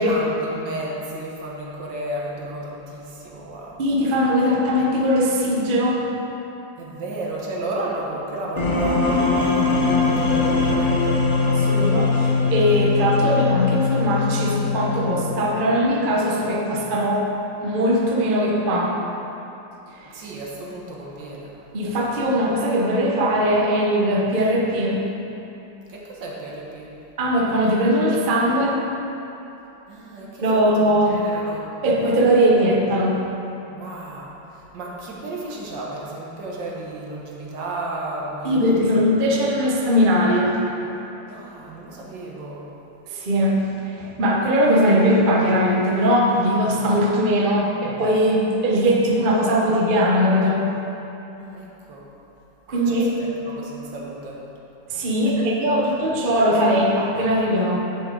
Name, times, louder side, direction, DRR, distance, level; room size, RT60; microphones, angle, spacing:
voice 1, 0.0-3.7 6.8-11.1 20.1-21.5 25.9-26.9 29.9-31.7 33.7-38.9 41.2-42.7 51.4-52.1 52.9-53.1 53.5-54.4 55.4-55.5, right 2 dB, 70° right, -3 dB, 1.9 m, -33 dB
voice 2, 3.8-6.1 11.5-17.3 17.6-19.0 19.9-20.1 21.7-25.1 27.2-28.8 30.4-31.3 31.8-33.2 38.4-40.6 43.1-50.7 52.7-53.2 54.9-57.8, equal, 40° right, -2 dB, 0.7 m, -20 dB
sound 1, 8.6-15.6, left 4 dB, 55° left, 0.5 m, -21 dB
10.0 x 6.9 x 3.8 m, 3.0 s
omnidirectional pair, 2.1 m